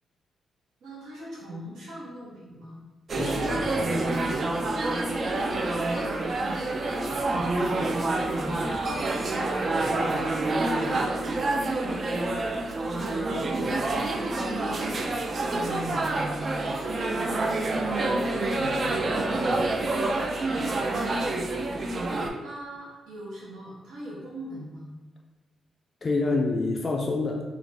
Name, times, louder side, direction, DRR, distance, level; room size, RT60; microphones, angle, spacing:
voice 1, 0.8-2.8 5.8-7.8 9.1-9.8 10.3-10.5 12.4-13.8 15.5-16.5 17.0-17.9 18.5-19.7 22.4-24.9, right 1 dB, 85° right, -7 dB, 0.7 m, -42 dB
voice 2, 3.1-4.2 26.0-27.4, left 3 dB, 45° left, 0 dB, 0.3 m, -28 dB
sound 1, 3.1-22.3, right 2 dB, 50° right, 0.3 m, -27 dB
2.3 x 2.0 x 3.2 m, 1.2 s
cardioid pair, 75°, 0 cm